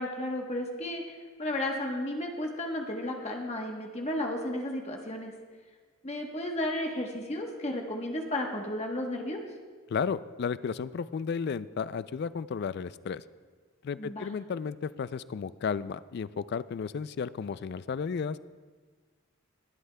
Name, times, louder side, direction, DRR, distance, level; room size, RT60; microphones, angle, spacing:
voice 1, 0.0-5.3 6.0-9.4 14.0-14.3, left 1 dB, 30° left, 1 dB, 1.1 m, -33 dB
voice 2, 9.9-13.2 13.8-18.4, left 6 dB, 50° left, 16 dB, 0.3 m, -33 dB
20.0 x 11.5 x 2.2 m, 1.5 s
head